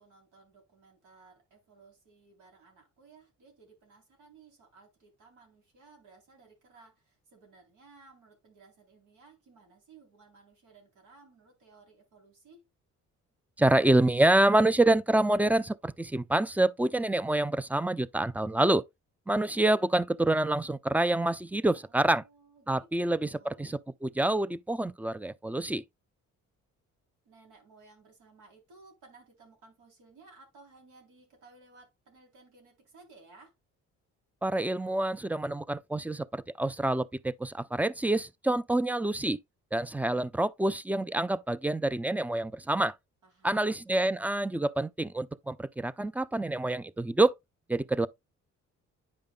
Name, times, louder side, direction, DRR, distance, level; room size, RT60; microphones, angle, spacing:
voice 1, 0.0-12.7 21.7-23.7 27.3-33.5 43.2-43.9, right 3 dB, 90° right, 3.5 m, -58 dB
voice 2, 13.6-18.8 19.3-22.2 22.7-25.8 34.4-39.4 39.7-42.9 43.4-47.3 47.7-48.1, right 1 dB, 5° right, 0.3 m, -27 dB
9.5 x 5.3 x 2.3 m
cardioid pair, 90°, 30 cm